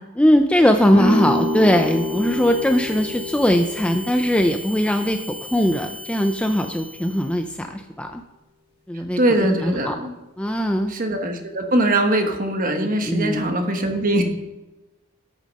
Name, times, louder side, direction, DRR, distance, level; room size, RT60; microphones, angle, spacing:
voice 1, 0.2-8.2 8.9-10.0 10.4-10.9 13.0-13.5, equal, 5° left, 5 dB, 0.4 m, -20 dB
sound 1, 0.9-7.5, left 4 dB, 75° left, 2.3 m, -38 dB
sound 2, 0.9-6.6, equal, 25° left, 3.5 m, -28 dB
voice 2, 9.2-10.2 10.9-14.2, right 1 dB, 40° right, 5 dB, 1.2 m, -21 dB
14.0 x 6.4 x 5.3 m, 1.1 s
head